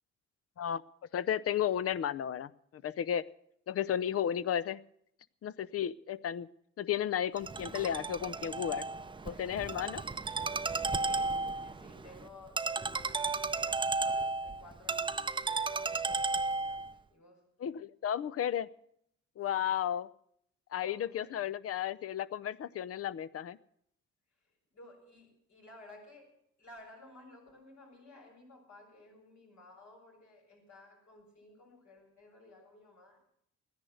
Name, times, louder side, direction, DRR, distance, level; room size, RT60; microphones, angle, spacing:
voice 1, 1.1-3.2 3.7-4.8 5.4-6.5 6.8-8.8 9.2-10.0 17.6-18.7 19.4-20.1 20.7-23.6, left 10 dB, 50° left, 18 dB, 0.6 m, -33 dB
Ringtone, 7.4-16.9, right 3 dB, 15° right, 0.6 m, -34 dB
voice 2, 9.2-10.2 10.9-16.0 16.2-17.4 19.5-19.7 20.8-21.5 24.3-26.3 26.6-33.3, left 2 dB, 70° left, 0 dB, 7.1 m, -56 dB
15.5 x 10.5 x 7.9 m, 0.72 s
cardioid pair, 90°, 30 cm